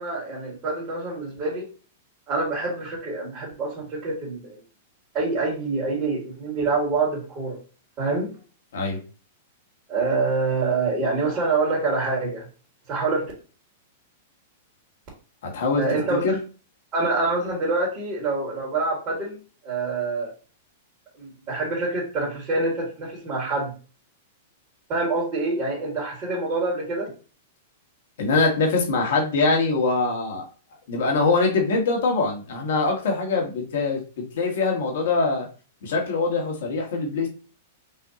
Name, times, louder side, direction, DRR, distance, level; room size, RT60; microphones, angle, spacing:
voice 1, 0.0-1.7 2.3-4.6 5.1-7.6 8.0-8.3 9.9-12.5 12.9-13.3 15.8-16.3 16.9-19.4 19.6-20.3 21.2-23.7 24.9-27.1, right 3 dB, 35° right, -6 dB, 2.1 m, -26 dB
voice 2, 15.4-16.4 28.2-30.4 30.9-35.5 35.8-37.3, left 3 dB, 70° left, 1 dB, 1.6 m, -23 dB
5.5 x 2.7 x 2.8 m, 0.35 s
hypercardioid pair, 115°, 0 cm